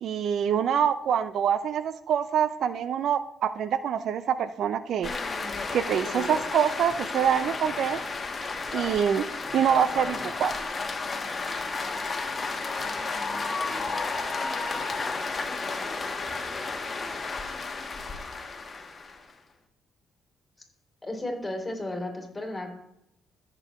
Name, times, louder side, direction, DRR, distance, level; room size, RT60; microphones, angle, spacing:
voice 1, 0.0-5.1 5.7-8.0 8.7-9.3 9.5-10.6, right 8 dB, 70° right, 13 dB, 0.4 m, -25 dB
sound 1, 5.0-19.3, left 3 dB, 35° left, 1.3 m, -32 dB
voice 2, 21.0-22.7, left 1 dB, 15° left, 1 dB, 3.1 m, -33 dB
14.0 x 6.8 x 3.0 m, 0.79 s
cardioid pair, 90°, 0 cm